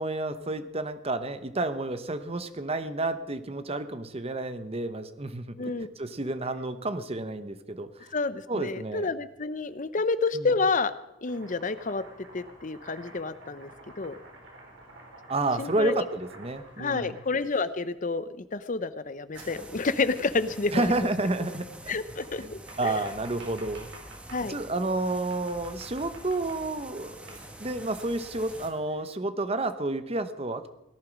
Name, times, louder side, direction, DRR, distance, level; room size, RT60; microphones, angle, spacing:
voice 1, 0.0-7.9 8.5-9.1 10.3-10.5 15.3-17.2 20.7-22.0 22.4-22.5 22.8-23.9 24.5-30.7, right 2 dB, 30° right, 11 dB, 0.9 m, -30 dB
voice 2, 8.1-10.9 11.2-12.0 12.3-13.7 14.0-14.1 15.6-16.0 16.8-20.9 21.9-23.0 24.3-24.5, left 4 dB, 40° left, 14 dB, 0.7 m, -29 dB
Domestic sounds home sounds, 11.2-17.6 19.4-20.5 22.2-24.5 25.3-26.9 27.3-29.1, right 2 dB, 70° right, 4.1 m, -50 dB
sound 1, 19.3-28.7, right 1 dB, 5° right, 1.1 m, -46 dB
18.0 x 11.0 x 6.2 m, 0.91 s
head